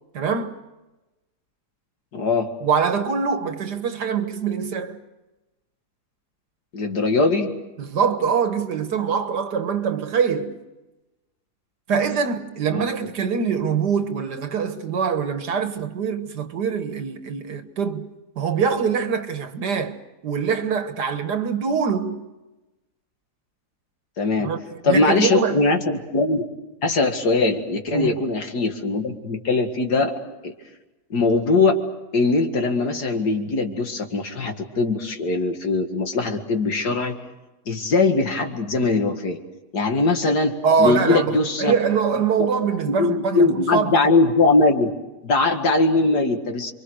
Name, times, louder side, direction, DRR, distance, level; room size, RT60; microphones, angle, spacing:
voice 1, 0.1-0.5 2.6-5.0 7.8-10.6 11.9-18.1 18.4-20.0 20.2-22.2 24.4-25.7 27.9-28.1 40.6-44.0, right 6 dB, 90° right, 2.1 m, -24 dB
voice 2, 2.1-2.5 6.7-7.5 12.7-12.8 24.2-24.5 24.8-26.4 26.8-30.1 30.4-30.5 31.1-31.8 32.1-37.1 37.7-39.4 39.7-41.7 42.9-44.9 45.2-46.7, left 3 dB, 80° left, 2.6 m, -21 dB
28.5 x 24.0 x 6.5 m
omnidirectional pair, 1.7 m